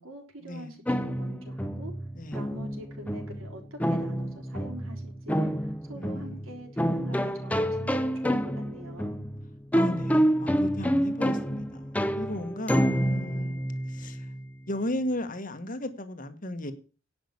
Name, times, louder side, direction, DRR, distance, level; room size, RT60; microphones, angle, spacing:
voice 1, 0.0-1.9 2.3-9.2, right 1 dB, 75° right, 4.0 m, -45 dB
sound 1, 0.9-14.4, equal, 5° left, 0.7 m, -28 dB
voice 2, 6.0-6.4 9.7-11.8 12.2-13.6 13.9-14.2 14.7-16.7, left 1 dB, 40° left, 1.5 m, -35 dB
11.0 x 6.1 x 8.5 m
head